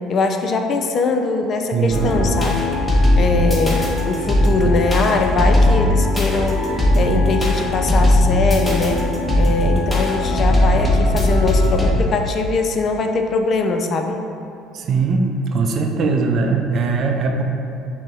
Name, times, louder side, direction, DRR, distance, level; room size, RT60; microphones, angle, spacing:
voice 1, 0.0-2.6 3.1-6.7 6.9-9.0 9.4-14.2, left 3 dB, 45° left, 5 dB, 0.4 m, -21 dB
sound 1, 1.9-11.9, left 1 dB, 10° left, 1.1 m, -18 dB
voice 2, 14.7-17.4, right 4 dB, 50° right, 3 dB, 0.5 m, -20 dB
5.9 x 2.1 x 4.2 m, 2.8 s
hypercardioid pair, 65°, 0 cm